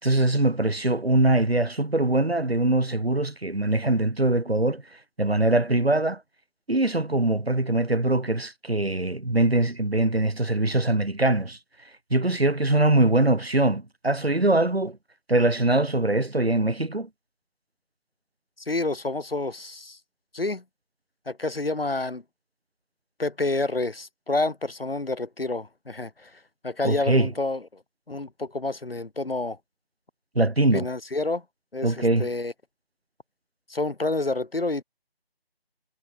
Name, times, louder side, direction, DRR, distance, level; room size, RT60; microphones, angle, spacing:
voice 1, 0.0-4.8 5.2-6.2 6.7-11.6 12.1-15.0 15.3-17.1 26.8-27.3 30.4-30.9 31.8-32.3, right 2 dB, 70° right, 5.3 m, -22 dB
voice 2, 18.6-20.0 20.3-20.6 21.3-22.2 23.2-27.8 28.1-29.6 30.7-31.4 31.7-32.5 33.7-34.8, left 2 dB, 65° left, 3.2 m, -29 dB
figure-of-eight pair, 160°, 31 cm